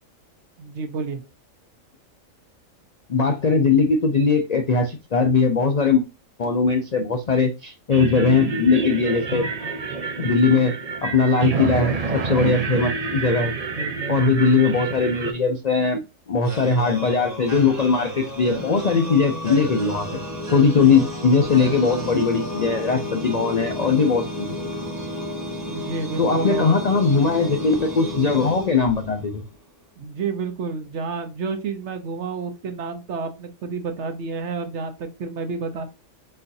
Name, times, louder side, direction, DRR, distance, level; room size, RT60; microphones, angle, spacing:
voice 1, 0.6-1.2 13.8-14.2 25.7-26.8 30.0-35.9, right 4 dB, 60° right, 6 dB, 1.0 m, -30 dB
voice 2, 3.1-6.0 6.4-9.5 10.2-10.7 11.0-13.5 14.1-16.0 16.3-20.1 20.5-24.6 26.2-29.4, left 4 dB, 60° left, 5 dB, 0.4 m, -20 dB
sound 1, 7.9-15.3, right 4 dB, 45° right, 0.5 m, -28 dB
sound 2, 16.4-29.4, equal, 15° right, 1.5 m, -32 dB
4.3 x 4.1 x 2.6 m, 0.26 s
omnidirectional pair, 1.4 m